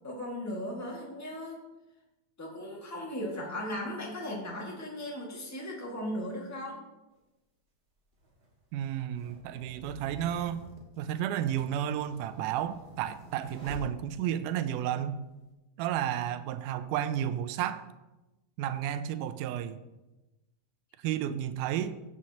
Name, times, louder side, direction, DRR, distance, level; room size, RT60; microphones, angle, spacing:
voice 1, 0.0-1.6 2.4-6.8, left 1 dB, 10° left, -2 dB, 0.8 m, -37 dB
sound 1, 7.1-7.2 8.1-14.5, equal, 25° right, 1.4 m, -49 dB
voice 2, 8.7-10.7 11.0-15.2 15.8-17.9 18.6-19.8 21.0-22.0, right 10 dB, 85° right, 12 dB, 2.1 m, -32 dB
16.0 x 7.4 x 2.8 m, 1.0 s
omnidirectional pair, 3.6 m